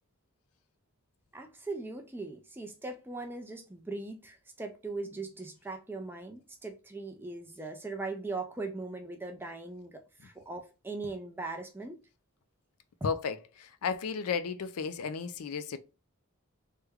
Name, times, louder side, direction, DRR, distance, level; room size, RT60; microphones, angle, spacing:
voice 1, 1.3-12.0, right 3 dB, 10° right, 0.4 m, -40 dB
voice 2, 13.0-15.8, left 6 dB, 90° left, 0.4 m, -33 dB
3.2 x 2.2 x 3.4 m
head